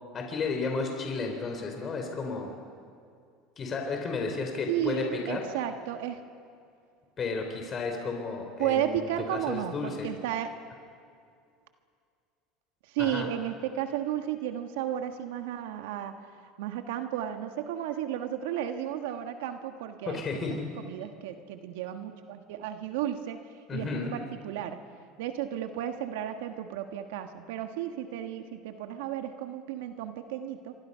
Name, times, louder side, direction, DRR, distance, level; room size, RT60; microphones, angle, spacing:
voice 1, 0.1-2.5 3.6-5.4 7.2-10.1 13.0-13.3 20.1-20.7 23.7-24.1, left 4 dB, 35° left, 3 dB, 4.1 m, -33 dB
voice 2, 4.7-6.2 8.6-10.5 12.9-16.1 16.6-24.8 25.2-30.8, right 11 dB, 80° right, 7 dB, 1.5 m, -33 dB
26.5 x 24.5 x 5.7 m, 2.3 s
supercardioid pair, 95°, 0 cm